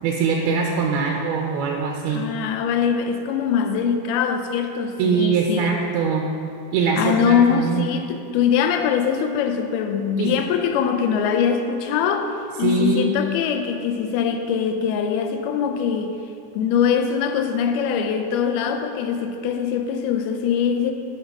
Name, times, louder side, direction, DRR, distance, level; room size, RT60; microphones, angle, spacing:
voice 1, 0.0-2.3 5.0-6.3 6.7-7.9 10.2-10.4 12.6-13.1, right 5 dB, 85° right, 1 dB, 2.6 m, -22 dB
voice 2, 2.1-5.8 7.0-12.3 12.6-16.1 16.5-20.9, left 7 dB, 85° left, 6 dB, 2.5 m, -22 dB
9.5 x 6.5 x 5.9 m, 2.6 s
omnidirectional pair, 4.4 m